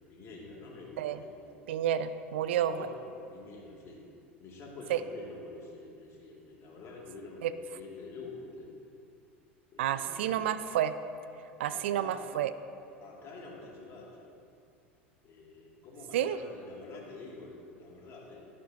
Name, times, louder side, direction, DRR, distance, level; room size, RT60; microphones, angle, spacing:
voice 1, 0.1-1.6 2.5-4.0 4.4-8.8 9.7-10.7 11.7-12.2 13.0-14.3 15.2-18.5, left 3 dB, 45° left, -3 dB, 2.5 m, -47 dB
voice 2, 1.7-2.9 4.9-5.0 7.4-7.5 9.8-10.9 11.6-12.5 16.1-16.4, right 10 dB, 70° right, 13 dB, 0.4 m, -30 dB
13.5 x 9.4 x 2.9 m, 2.6 s
hypercardioid pair, 80°, 7 cm